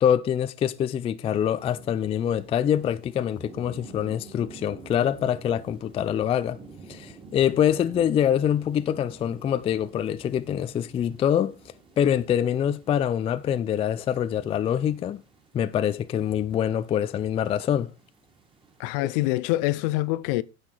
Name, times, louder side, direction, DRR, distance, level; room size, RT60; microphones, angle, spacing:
voice 1, 0.0-6.6 6.9-11.5 12.0-15.2 15.5-17.9 19.0-19.1, left 9 dB, 20° left, 0.4 m, -25 dB
sound 1, 1.2-19.3, right 4 dB, 15° right, 2.1 m, -50 dB
voice 2, 18.8-20.4, left 18 dB, 55° left, 0.6 m, -25 dB
9.7 x 6.6 x 4.5 m
supercardioid pair, 125°, 33 cm